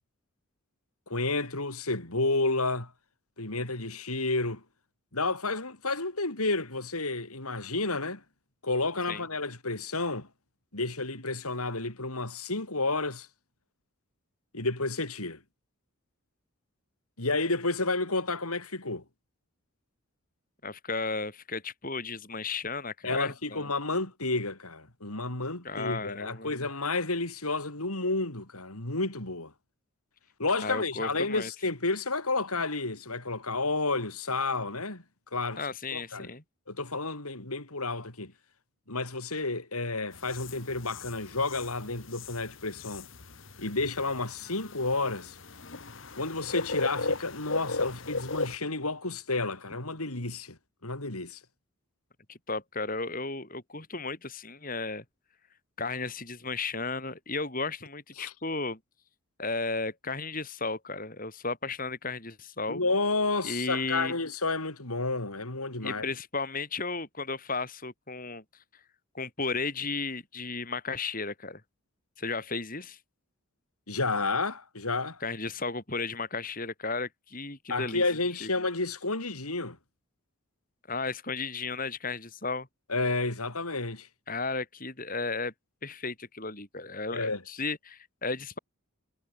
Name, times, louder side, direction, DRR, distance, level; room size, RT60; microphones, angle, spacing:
voice 1, 1.1-2.9 3.4-4.6 5.1-8.2 8.6-10.3 10.7-13.3 14.5-15.4 17.2-19.0 23.0-29.5 30.4-35.0 35.3-35.6 35.9-36.3 36.7-38.3 38.9-43.1 43.6-45.4 46.2-50.6 50.8-51.4 58.2-58.3 62.7-66.1 73.9-75.2 77.7-79.8 82.9-84.1 87.1-87.4, left 3 dB, 90° left, 5.4 m, -31 dB
voice 2, 20.6-23.7 25.6-26.5 30.6-31.5 35.6-36.4 52.3-55.0 55.8-58.8 59.4-62.8 63.4-64.2 65.8-68.4 69.1-71.6 72.2-73.0 75.2-78.0 78.4-78.5 80.9-82.7 84.3-85.5 85.8-88.6, left 3 dB, 40° left, 5.9 m, -34 dB
sound 1, 40.1-48.6, left 3 dB, 60° left, 1.6 m, -37 dB
head